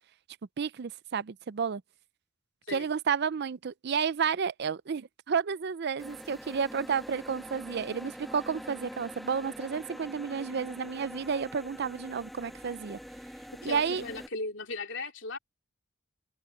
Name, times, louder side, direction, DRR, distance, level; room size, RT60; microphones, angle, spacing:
voice 1, 0.6-1.8 2.7-13.0 13.6-14.0, right 6 dB, 55° right, 0.4 m, -31 dB
sound 1, 6.0-14.3, equal, ahead, 0.6 m, -44 dB
voice 2, 13.6-15.4, left 3 dB, 60° left, 3.8 m, -37 dB
head